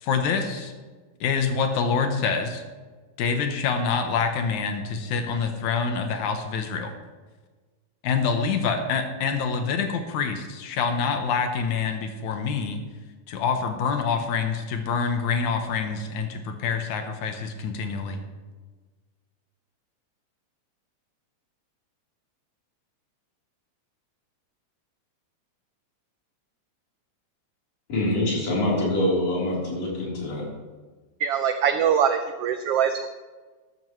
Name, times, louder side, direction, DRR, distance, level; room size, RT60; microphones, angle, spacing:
voice 1, 0.0-0.7 1.2-2.6 3.2-6.9 8.0-12.8 13.3-18.2, left 5 dB, 80° left, 5 dB, 2.4 m, -26 dB
voice 2, 27.9-30.4, left 1 dB, 60° left, -6 dB, 5.0 m, -25 dB
voice 3, 31.2-33.1, right 8 dB, 80° right, 8 dB, 1.3 m, -23 dB
13.5 x 12.5 x 3.2 m, 1.4 s
omnidirectional pair, 3.3 m